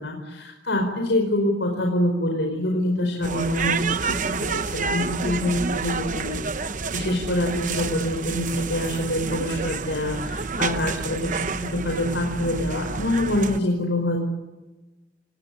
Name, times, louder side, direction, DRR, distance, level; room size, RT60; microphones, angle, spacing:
voice 1, 0.0-6.4 6.9-14.2, left 1 dB, 80° left, 2 dB, 5.0 m, -25 dB
sound 1, 3.2-13.6, right 4 dB, 45° right, 0.9 m, -29 dB
28.0 x 20.5 x 9.9 m, 1.1 s
head